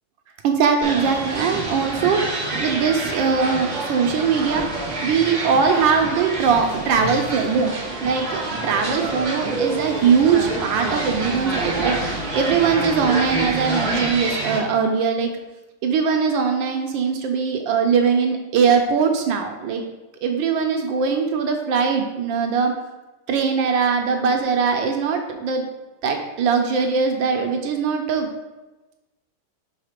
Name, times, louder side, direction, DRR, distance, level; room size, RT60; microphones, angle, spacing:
voice 1, 0.4-4.7 5.0-7.7 8.0-15.3 15.8-19.8 20.2-22.7 23.3-25.7 26.0-28.3, right 6 dB, 75° right, 4 dB, 1.2 m, -21 dB
sound 1, 0.8-14.6, right 2 dB, 45° right, 0.5 m, -27 dB
sound 2, 6.4-13.4, left 3 dB, 85° left, 1.8 m, -40 dB
5.6 x 3.5 x 5.0 m, 1.1 s
omnidirectional pair, 2.4 m